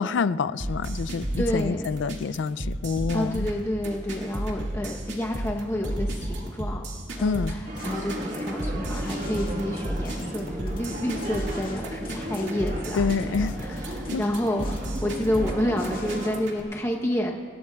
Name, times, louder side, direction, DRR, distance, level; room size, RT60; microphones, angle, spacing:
voice 1, 0.0-3.5 7.2-7.6 12.9-13.6 14.1-14.2, left 5 dB, 80° left, 15 dB, 0.4 m, -27 dB
sound 1, 0.6-16.6, right 1 dB, 75° right, 2.1 m, -33 dB
voice 2, 1.4-1.9 3.1-6.9 7.2-17.3, left 1 dB, 15° left, 0 dB, 0.9 m, -29 dB
sound 2, 7.2-16.3, left 2 dB, 50° left, 2.0 m, -45 dB
sound 3, 7.7-16.4, right 1 dB, 45° right, 1.4 m, -35 dB
26.0 x 16.5 x 2.3 m, 2.3 s
head